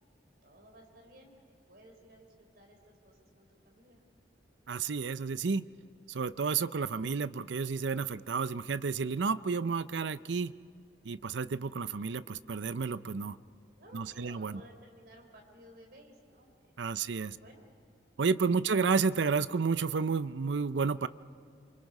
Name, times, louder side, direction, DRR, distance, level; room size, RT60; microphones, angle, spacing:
voice 1, 0.4-4.0 13.8-16.8 17.1-17.7 18.6-18.8, equal, 55° right, 2 dB, 4.1 m, -57 dB
voice 2, 4.7-5.6 6.1-10.5 11.0-13.4 13.9-14.6 16.8-17.4 18.2-21.1, right 5 dB, 70° right, 15 dB, 0.5 m, -31 dB
27.0 x 24.5 x 5.4 m, 2.4 s
head